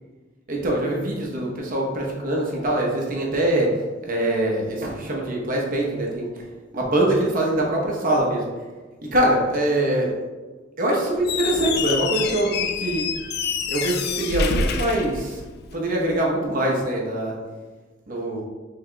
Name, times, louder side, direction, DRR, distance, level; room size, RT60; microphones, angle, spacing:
voice 1, 0.5-3.7 4.0-6.3 6.7-8.4 9.1-10.1 10.8-13.1 13.7-15.4 15.7-17.4 18.1-18.4, right 1 dB, 45° right, -2 dB, 0.9 m, -23 dB
Squeak, 11.2-15.8, left 5 dB, 55° left, 0.3 m, -27 dB
5.5 x 3.7 x 2.3 m, 1.3 s
head